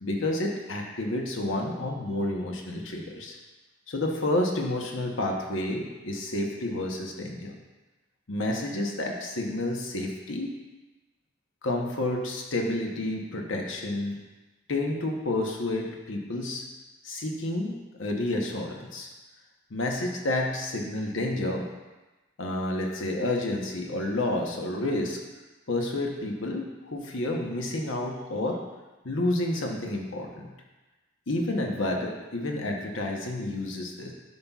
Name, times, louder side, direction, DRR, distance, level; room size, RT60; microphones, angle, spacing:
voice 1, 0.0-3.3 3.9-7.5 8.3-10.5 11.6-14.2 14.7-16.6 17.0-19.1 19.7-21.7 22.4-25.2 25.7-28.6 29.0-30.5 31.3-34.1, left 1 dB, 70° left, 1 dB, 0.9 m, -30 dB
9.4 x 5.6 x 2.4 m, 1.2 s
head